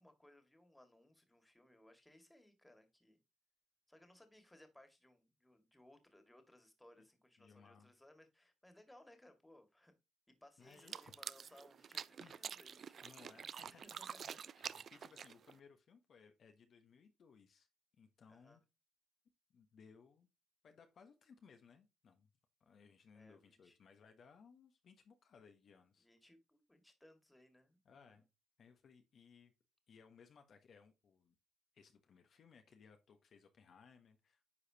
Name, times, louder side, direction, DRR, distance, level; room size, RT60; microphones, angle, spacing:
voice 1, 0.0-3.2 3.9-9.9 10.4-13.4 13.7-14.4 14.6-14.9 18.3-18.6 23.1-23.8 26.0-28.2, left 1 dB, 10° left, 2.0 m, -65 dB
voice 2, 7.4-7.9 10.6-11.1 12.2-12.4 13.0-17.7 18.0-18.6 19.5-20.3 20.6-22.3 22.6-26.1 27.8-28.3 28.6-29.5 29.9-31.3 31.7-34.4, left 6 dB, 55° left, 1.1 m, -63 dB
sound 1, 10.7-15.6, right 7 dB, 55° right, 0.3 m, -48 dB
9.8 x 4.9 x 2.8 m
cardioid pair, 90°, 0 cm